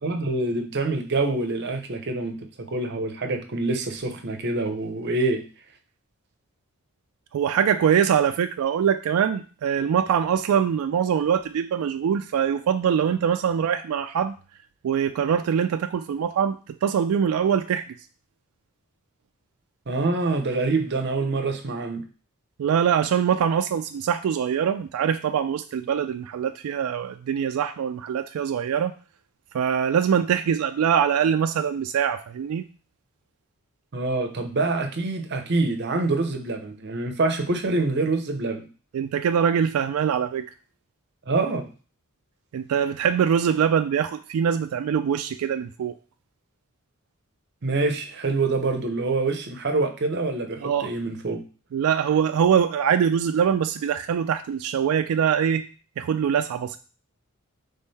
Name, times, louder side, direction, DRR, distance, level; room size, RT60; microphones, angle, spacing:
voice 1, 0.0-5.4 19.9-22.0 33.9-38.7 41.3-41.7 47.6-51.4, right 3 dB, 50° right, 5 dB, 0.7 m, -26 dB
voice 2, 7.3-14.3 14.8-17.8 22.6-28.9 29.5-32.6 38.9-40.4 42.5-46.0 50.6-50.9 51.7-55.6 56.0-56.8, right 8 dB, 80° right, 8 dB, 0.3 m, -23 dB
3.7 x 3.5 x 4.1 m, 0.37 s
head